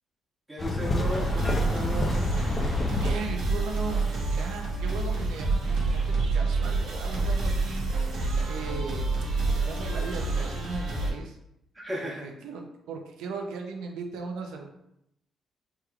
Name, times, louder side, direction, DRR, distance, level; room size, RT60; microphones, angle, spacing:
voice 1, 0.5-2.2 11.7-12.3, equal, 10° right, -7 dB, 1.1 m, -35 dB
sound 1, 0.6-3.1, left 2 dB, 35° left, 0.6 m, -28 dB
sound 2, 1.0-11.1, right 3 dB, 75° right, 0.8 m, -28 dB
voice 2, 3.0-6.0 6.3-9.1 9.5-11.4 12.0-12.6 12.9-14.7, right 4 dB, 90° right, 2 dB, 0.5 m, -37 dB
3.4 x 3.0 x 2.3 m, 0.80 s
cardioid pair, 90°, 0 cm